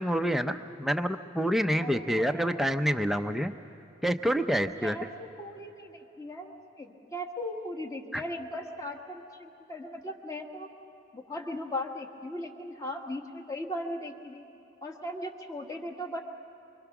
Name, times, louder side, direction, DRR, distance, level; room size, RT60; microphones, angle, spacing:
voice 1, 0.0-3.5 4.0-5.0 8.1-8.2, equal, ahead, 6 dB, 0.6 m, -27 dB
voice 2, 1.8-2.6 4.8-10.7 11.1-14.4 14.8-16.2, left 1 dB, 15° left, 2 dB, 1.6 m, -38 dB
25.5 x 24.0 x 6.0 m, 3.0 s
head